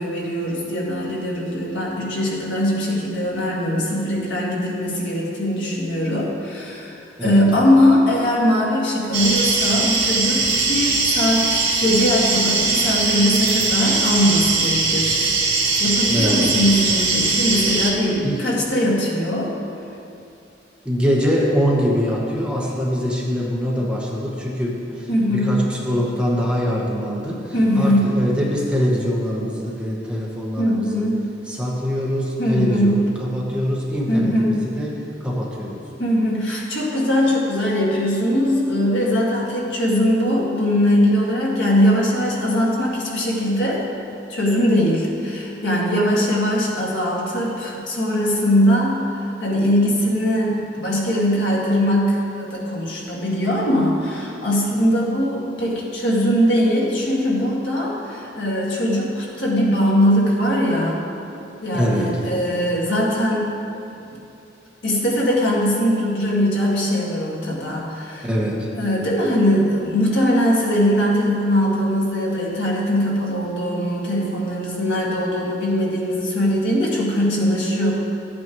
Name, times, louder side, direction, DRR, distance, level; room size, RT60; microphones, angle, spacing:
voice 1, 0.0-15.2 15.8-19.5 25.1-25.6 27.5-28.1 30.6-31.2 32.4-33.0 34.1-34.6 36.0-43.8 44.3-49.0 49.4-61.0 61.6-63.5 63.9-64.0 64.8-68.3 68.8-77.9, equal, 70° left, -4 dB, 2.0 m, -20 dB
voice 2, 7.2-7.5 16.1-16.6 18.2-18.4 20.8-31.1 31.5-35.8 61.7-62.2 68.2-68.7, equal, 5° right, -4 dB, 1.0 m, -23 dB
sound 1, 9.1-17.9, right 3 dB, 65° right, 2.0 m, -20 dB
13.0 x 8.6 x 3.1 m, 2.6 s
head